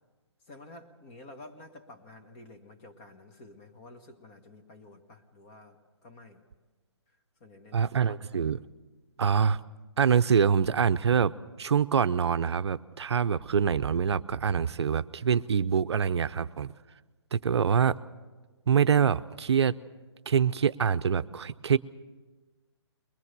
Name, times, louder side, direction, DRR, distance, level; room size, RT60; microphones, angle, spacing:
voice 1, 0.5-6.4 7.4-8.4, left 2 dB, 25° left, 9 dB, 1.6 m, -51 dB
voice 2, 7.7-8.6 9.2-9.6 10.0-16.7 17.3-18.0 18.7-19.7 20.3-21.8, right 7 dB, 65° right, 12 dB, 0.6 m, -25 dB
22.5 x 20.5 x 6.7 m, 1.3 s
hypercardioid pair, 150°, 15 cm